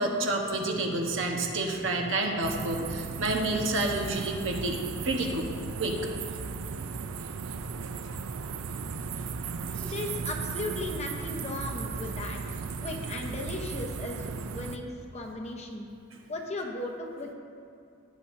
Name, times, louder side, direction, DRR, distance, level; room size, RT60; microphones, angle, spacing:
voice 1, 0.0-5.5 5.8-6.0 8.1-8.2 8.4-8.5 9.8-9.9, right 2 dB, 60° right, 1 dB, 1.2 m, -29 dB
sound 1, 2.4-14.8, right 5 dB, 75° right, 0.5 m, -36 dB
voice 2, 9.7-15.9 16.3-17.3, left 2 dB, 30° left, 1 dB, 0.9 m, -37 dB
16.5 x 8.4 x 2.7 m, 2.4 s
head